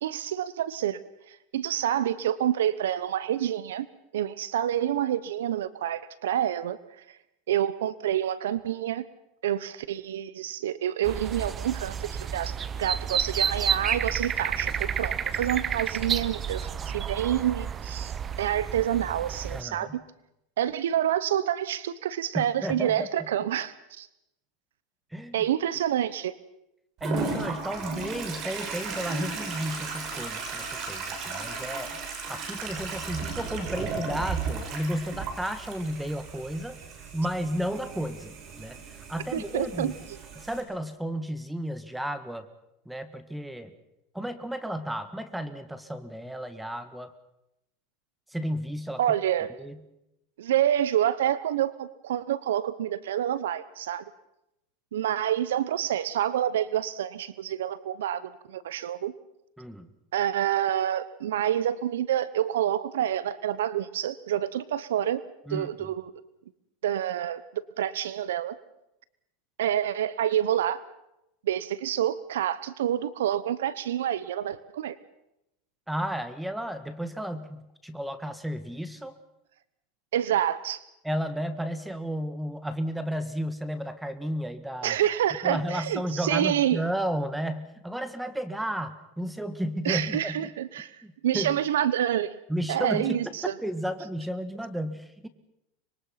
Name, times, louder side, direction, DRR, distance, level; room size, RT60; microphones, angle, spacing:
voice 1, 0.0-1.0 1.3-3.9 4.1-6.8 7.5-9.0 9.4-19.9 20.6-24.1 25.3-26.3 39.3-39.9 49.0-49.5 50.4-54.0 54.9-59.1 60.1-65.2 65.5-66.1 66.8-68.5 69.6-70.8 71.4-75.0 80.1-80.8 84.8-86.8 89.8-90.9 91.2-92.4 92.7-93.5, right 11 dB, 90° right, 17 dB, 1.0 m, -28 dB
sound 1, 11.0-19.6, right 7 dB, 25° right, 0.9 m, -30 dB
voice 2, 19.5-20.0 22.3-23.3 25.1-25.5 27.0-32.0 32.3-36.8 37.1-39.9 40.4-42.5 42.9-43.7 44.1-47.1 48.3-49.1 49.6-49.8 59.6-59.9 65.5-65.7 75.9-79.2 81.0-85.0 85.4-90.5 91.0-91.6 92.5-95.3, equal, 5° right, 11 dB, 1.7 m, -33 dB
Toilet flush, 27.0-40.6, right 5 dB, 45° right, 5.6 m, -35 dB
25.0 x 22.5 x 5.9 m, 0.86 s
supercardioid pair, 120°, 0 cm